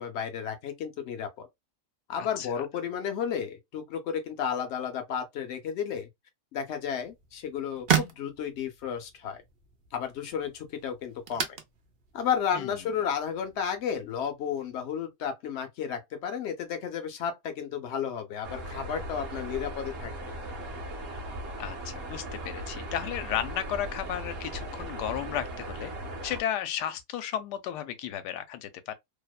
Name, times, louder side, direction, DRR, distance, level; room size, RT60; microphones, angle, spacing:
voice 1, 0.0-1.5 2.1-6.1 6.5-9.4 9.9-11.6 12.1-20.1, left 8 dB, 60° left, 0.7 m, -32 dB
sound 1, 7.0-14.3, right 8 dB, 80° right, 0.5 m, -35 dB
voice 2, 12.5-12.9 21.6-25.9 26.2-28.9, left 10 dB, 85° left, 1.2 m, -34 dB
sound 2, 18.4-26.4, right 1 dB, 50° right, 0.8 m, -38 dB
2.8 x 2.1 x 2.2 m
omnidirectional pair, 1.7 m